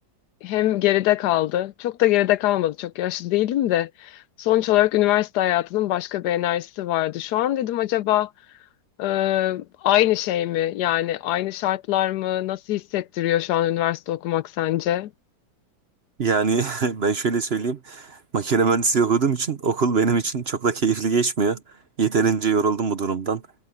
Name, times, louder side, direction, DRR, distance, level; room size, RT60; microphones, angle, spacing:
voice 1, 0.4-8.3 9.0-15.1, left 14 dB, 80° left, 1.2 m, -23 dB
voice 2, 16.2-21.6 22.0-23.4, right 5 dB, 45° right, 1.0 m, -22 dB
omnidirectional pair, 1.7 m